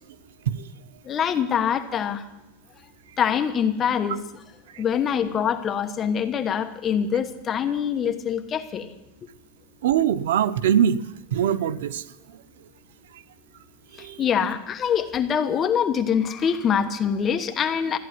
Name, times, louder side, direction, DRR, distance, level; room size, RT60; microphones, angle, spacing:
voice 1, 1.0-2.3 3.2-4.4 4.8-8.9 14.0-18.0, left 8 dB, 20° left, 7 dB, 1.2 m, -24 dB
voice 2, 9.8-11.0 11.3-12.0 14.0-14.2, right 9 dB, 85° right, 14 dB, 0.8 m, -22 dB
14.5 x 10.5 x 9.5 m, 0.92 s
supercardioid pair, 160°, 0 cm